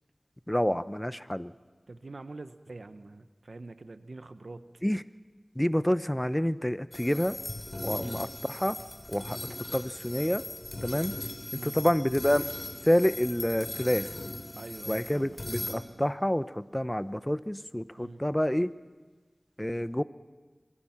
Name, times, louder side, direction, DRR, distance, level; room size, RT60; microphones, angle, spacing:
voice 1, 0.5-1.5 4.8-5.0 5.6-7.4 7.8-8.8 9.1-9.4 9.7-10.4 10.8-11.1 11.5-12.5 12.9-14.1 14.9-18.7 19.6-20.0, equal, 15° left, 14 dB, 0.8 m, -28 dB
voice 2, 1.9-4.6 7.9-8.2 11.5-11.8 14.6-15.4 18.0-18.2, right 2 dB, 85° right, 10 dB, 1.1 m, -44 dB
sound 1, 6.9-15.8, left 1 dB, 50° left, 3.1 m, -39 dB
26.0 x 23.0 x 5.9 m, 1.4 s
wide cardioid pair, 40°, 0 cm